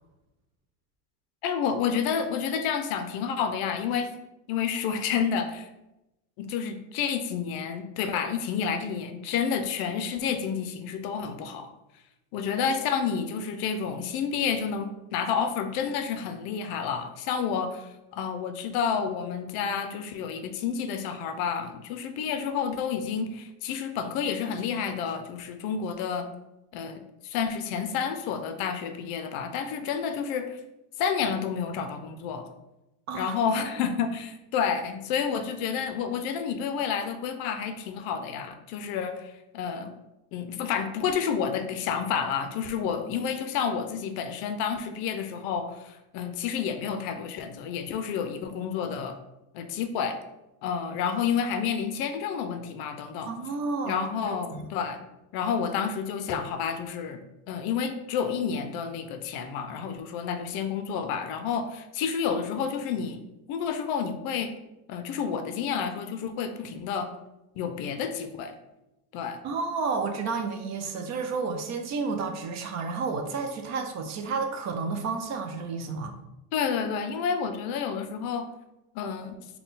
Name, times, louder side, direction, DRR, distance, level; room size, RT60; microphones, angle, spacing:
voice 1, 1.4-4.1 4.5-5.7 6.4-11.7 12.3-26.3 26.7-30.6 31.0-32.5 33.1-40.0 40.3-49.2 49.5-50.2 50.6-53.3 53.8-55.0 55.3-57.2 57.5-63.2 63.5-64.5 64.9-67.1 67.5-68.5 69.1-69.4 76.5-78.5 78.9-79.5, left 7 dB, 55° left, 8 dB, 0.5 m, -30 dB
voice 2, 53.3-54.7 69.4-76.1, right 4 dB, 40° right, 4 dB, 0.4 m, -31 dB
3.6 x 2.2 x 3.9 m, 0.93 s
supercardioid pair, 120°, 46 cm